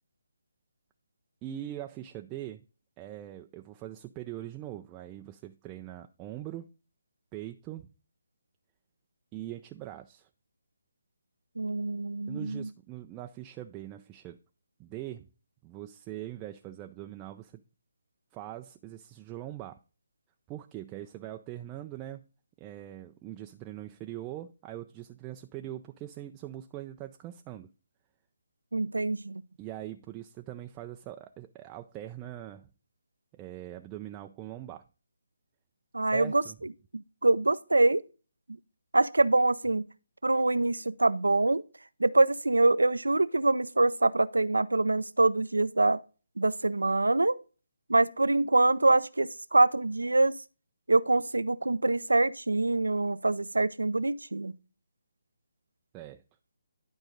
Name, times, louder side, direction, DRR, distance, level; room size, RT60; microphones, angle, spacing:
voice 1, 1.4-2.6 3.0-6.7 7.3-7.9 9.3-10.3 12.3-14.4 14.8-15.3 15.6-17.6 18.3-19.8 20.5-22.3 22.6-27.7 29.6-32.7 33.3-34.8 36.0-36.6 55.9-56.2, right 13 dB, 20° right, 0.5 m, -42 dB
voice 2, 11.6-12.7 28.7-29.4 35.9-36.4 36.9-38.0 38.9-39.8 40.2-41.6 42.0-46.0 46.4-47.4 47.9-50.4 50.9-54.5, right 2 dB, 85° right, 0.6 m, -25 dB
11.5 x 4.8 x 3.9 m
figure-of-eight pair, 150°, 0 cm